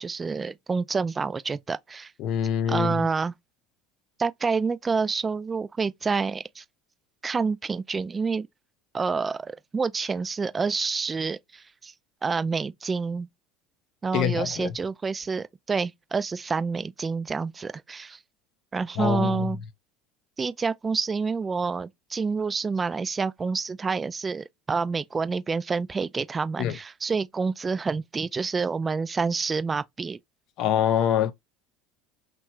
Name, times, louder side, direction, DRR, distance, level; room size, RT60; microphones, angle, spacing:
voice 1, 0.0-2.1 2.7-3.3 4.2-6.6 7.2-8.5 8.9-11.9 12.2-13.3 14.0-18.2 18.7-19.6 20.4-30.2, right 4 dB, 25° right, 0.3 m, -28 dB
voice 2, 2.2-3.1 14.1-14.7 19.0-19.5 26.6-26.8 30.6-31.3, left 9 dB, 55° left, 0.5 m, -25 dB
2.9 x 2.3 x 2.9 m
hypercardioid pair, 75°, 0 cm